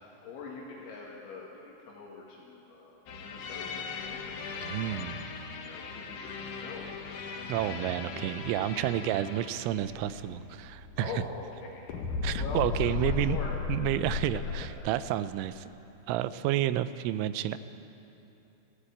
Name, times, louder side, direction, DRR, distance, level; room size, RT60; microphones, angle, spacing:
voice 1, 0.2-4.8 5.5-8.2 11.0-11.5 11.7-13.6, left 4 dB, 70° left, -3 dB, 4.2 m, -44 dB
sound 1, 3.1-11.6 11.9-14.7, left 5 dB, 90° left, 1.7 m, -37 dB
voice 2, 4.6-5.2 7.5-11.1 12.2-13.4 13.7-15.7 16.1-17.6, right 13 dB, 85° right, 13 dB, 3.0 m, -30 dB
21.5 x 15.5 x 8.6 m, 2.9 s
omnidirectional pair, 5.6 m